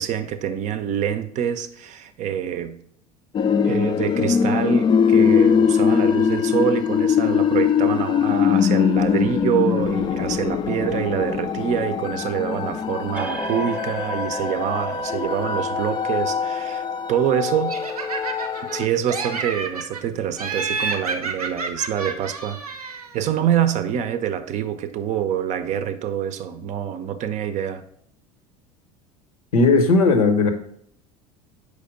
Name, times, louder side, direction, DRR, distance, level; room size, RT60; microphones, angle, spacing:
voice 1, 0.0-2.8 3.6-17.8 18.6-27.8, right 9 dB, 40° right, 0.6 m, -26 dB
sound 1, 3.3-18.9, left 7 dB, 25° left, 0.4 m, -22 dB
sound 2, 13.1-20.4, right 1 dB, 5° right, 0.9 m, -36 dB
Laughter, 17.7-18.8 19.1-20.0 20.4-23.2, right 4 dB, 85° right, 0.7 m, -29 dB
voice 2, 29.5-30.5, left 3 dB, 75° left, 0.9 m, -16 dB
5.0 x 4.2 x 5.2 m
figure-of-eight pair, 75°, 19 cm